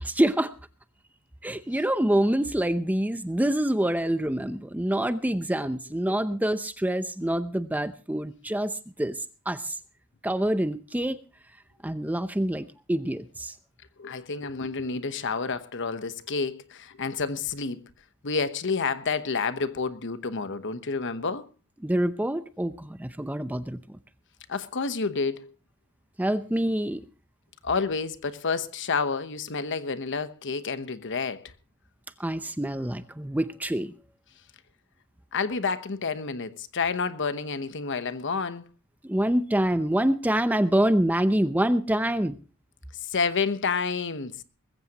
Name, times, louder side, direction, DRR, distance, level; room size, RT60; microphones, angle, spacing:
voice 1, 0.0-0.5 1.4-9.2 9.5-9.7 10.2-11.2 11.8-13.5 21.8-24.0 26.2-27.1 32.2-33.9 39.0-42.4, right 1 dB, 10° right, 0.6 m, -26 dB
voice 2, 14.0-17.8 18.2-21.5 24.5-25.5 27.6-31.5 35.3-38.6 43.0-44.4, left 4 dB, 55° left, 1.0 m, -29 dB
20.5 x 15.5 x 2.9 m
head